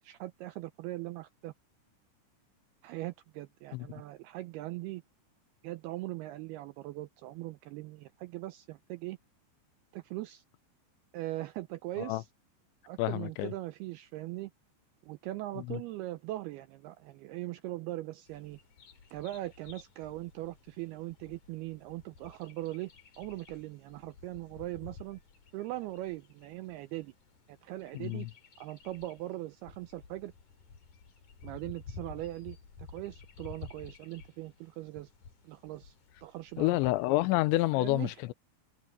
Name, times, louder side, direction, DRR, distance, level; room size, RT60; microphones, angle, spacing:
voice 1, 0.0-1.5 2.8-5.0 5.6-9.2 9.9-10.4 11.1-12.3 12.8-14.5 15.0-18.6 19.1-22.9 23.2-25.2 25.5-27.1 27.5-28.3 28.6-30.3 31.4-35.1 35.4-36.0 36.2-36.8 37.7-38.2, right 17 dB, 90° right, 2.3 m, -40 dB
voice 2, 13.0-13.5 15.6-15.8 27.9-28.3 36.6-38.3, left 18 dB, 85° left, 3.0 m, -29 dB
Bird vocalization bird call bird song, 18.3-37.6, left 5 dB, 45° left, 4.3 m, -53 dB
omnidirectional pair, 5.2 m